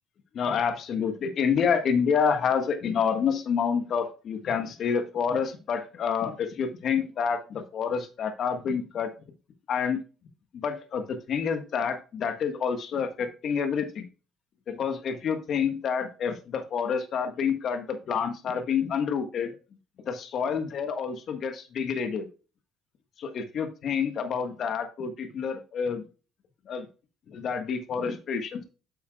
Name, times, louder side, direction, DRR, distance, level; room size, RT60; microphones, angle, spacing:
voice 1, 0.3-9.1 9.7-10.0 10.5-14.1 14.7-19.5 20.0-22.3 23.2-26.0 26.7-26.8 27.3-28.6, left 6 dB, 60° left, 7 dB, 1.3 m, -28 dB
9.7 x 7.1 x 2.2 m, 0.33 s
hypercardioid pair, 60°, 0 cm